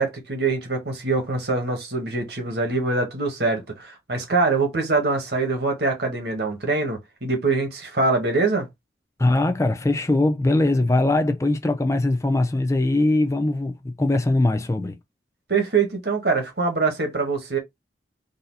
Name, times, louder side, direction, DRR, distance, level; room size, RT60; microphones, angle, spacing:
voice 1, 0.0-8.7 15.5-17.6, right 3 dB, 65° right, 1.5 m, -24 dB
voice 2, 9.2-15.0, left 2 dB, 15° left, 0.4 m, -21 dB
4.0 x 2.7 x 4.0 m
head